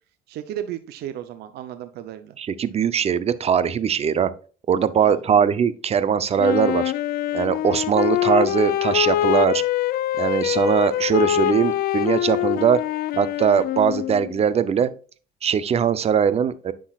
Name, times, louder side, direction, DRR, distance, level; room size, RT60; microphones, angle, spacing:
voice 1, 0.3-2.4 5.0-5.5, right 11 dB, 75° right, 10 dB, 0.7 m, -35 dB
voice 2, 2.4-4.3 4.7-6.9 7.3-9.6 10.2-12.8 13.2-14.9 15.4-16.7, right 7 dB, 40° right, 15 dB, 0.6 m, -21 dB
Wind instrument woodwind instrument, 6.4-14.4, left 13 dB, 65° left, 0.4 m, -24 dB
9.9 x 6.2 x 2.4 m, 0.38 s
cardioid pair, 110°, 17 cm